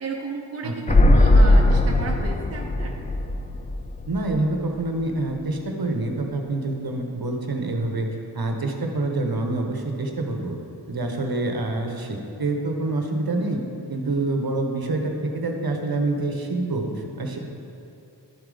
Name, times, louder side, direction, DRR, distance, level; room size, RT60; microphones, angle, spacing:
voice 1, 0.0-2.9, right 4 dB, 35° right, 1 dB, 0.7 m, -33 dB
voice 2, 0.6-1.0 4.1-8.1 8.3-10.6 10.9-13.6 13.9-17.4, right 2 dB, 55° right, 3 dB, 1.0 m, -26 dB
sound 1, 0.9-4.6 4.9-5.0, left 1 dB, 20° left, 0.4 m, -18 dB
11.0 x 4.7 x 3.9 m, 2.7 s
cardioid pair, 40°, 43 cm